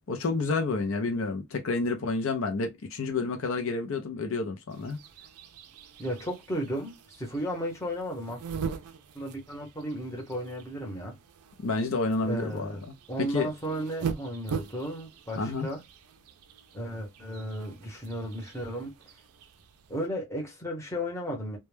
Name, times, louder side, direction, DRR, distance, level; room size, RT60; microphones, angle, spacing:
voice 1, 0.1-5.0 11.6-12.9 13.3-13.5 15.4-15.7, left 3 dB, 60° left, 0.5 m, -29 dB
sound 1, 4.7-20.1, right 6 dB, 85° right, 0.4 m, -42 dB
voice 2, 6.0-8.4 9.1-11.2 12.2-12.8 13.1-15.8 16.7-18.9 19.9-21.6, equal, 15° left, 0.8 m, -34 dB
2.2 x 2.1 x 3.1 m
head